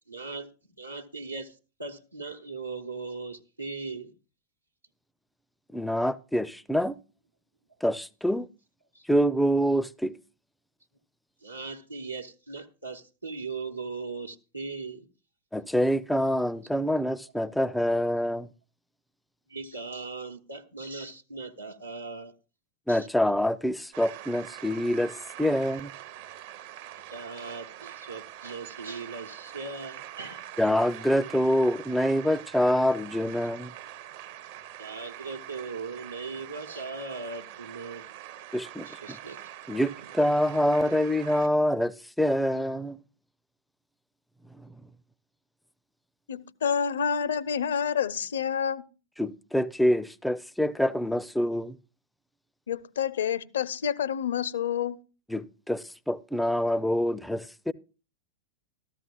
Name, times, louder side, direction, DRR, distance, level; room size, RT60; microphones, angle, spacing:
voice 1, 0.1-0.5 0.8-1.5 1.8-4.1 8.9-9.0 11.4-15.1 19.5-22.3 22.9-23.1 27.1-30.5 34.8-38.1 38.8-39.5, right 4 dB, 85° right, 0.9 m, -39 dB
voice 2, 5.7-7.0 7.8-8.5 9.1-10.1 15.5-18.5 22.9-25.1 25.4-25.9 30.6-33.7 38.5-39.2 39.7-43.0 44.6-44.7 49.2-51.8 55.3-57.7, equal, 5° left, 0.4 m, -26 dB
sound 1, 23.9-41.5, right 12 dB, 50° right, 0.7 m, -44 dB
voice 3, 46.3-48.8 52.7-55.0, left 8 dB, 65° left, 0.6 m, -28 dB
13.5 x 13.5 x 2.2 m
figure-of-eight pair, 90°, 0 cm